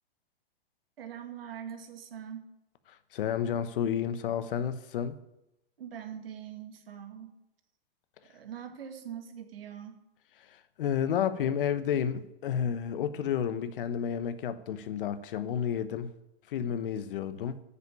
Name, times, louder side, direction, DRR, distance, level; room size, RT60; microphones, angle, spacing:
voice 1, 1.0-2.5 5.8-7.4 8.2-10.0, right 9 dB, 75° right, 5 dB, 2.0 m, -43 dB
voice 2, 3.1-5.2 10.5-16.1 16.5-17.6, left 8 dB, 60° left, 12 dB, 1.1 m, -31 dB
9.5 x 7.1 x 8.6 m, 0.90 s
hypercardioid pair, 135°, 29 cm